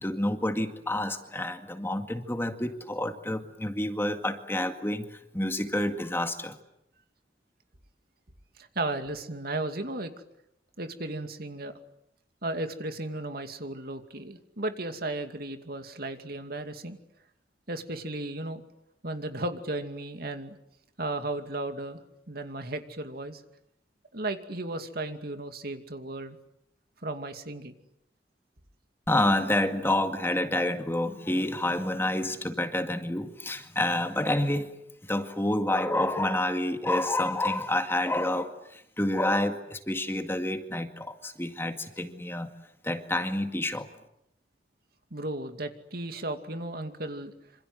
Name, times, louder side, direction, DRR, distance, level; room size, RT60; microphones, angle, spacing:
voice 1, 0.0-6.6 29.1-34.7 35.0-42.5 42.8-43.9, left 1 dB, 15° left, 6 dB, 2.1 m, -28 dB
voice 2, 8.6-10.1 10.8-11.7 12.4-17.0 17.7-18.6 19.0-20.6 21.0-22.0 22.3-23.4 24.1-26.4 27.0-27.7 45.1-47.3, right 2 dB, 60° right, 7 dB, 2.6 m, -35 dB
27.0 x 27.0 x 8.0 m, 0.79 s
head